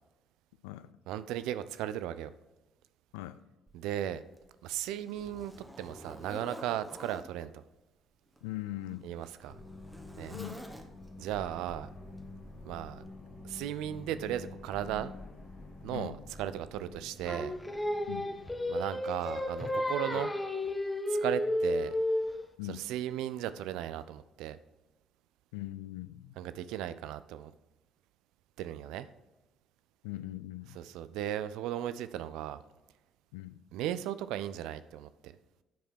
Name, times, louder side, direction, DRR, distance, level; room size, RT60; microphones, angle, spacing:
voice 1, 1.1-2.3 3.7-4.2 4.6-7.6 9.0-9.5 10.2-10.4 11.2-11.9 12.7-13.0 13.4-15.1 15.8-16.1 16.4-17.5 18.7-20.3 21.1-21.9 22.7-24.6 26.4-27.5 28.6-29.1 30.8-32.6 33.7-35.3, right 11 dB, 65° right, 13 dB, 0.4 m, -36 dB
Zipper (clothing), 3.7-3.8 4.4-7.3 8.3-11.2 12.2-12.4 13.0-13.1, equal, 10° right, 1.2 m, -49 dB
voice 2, 8.4-9.1 10.3-10.6 15.9-16.2 18.1-18.3 20.1-20.2 22.6-22.8 25.5-26.4 30.0-30.8 33.3-33.6, left 16 dB, 75° left, 14 dB, 0.4 m, -40 dB
sound 1, 9.5-18.7, left 2 dB, 40° left, 1.4 m, -48 dB
Singing, 17.3-22.5, left 1 dB, 15° left, 1.0 m, -32 dB
9.1 x 5.0 x 4.4 m, 1.1 s
figure-of-eight pair, 45°, 0 cm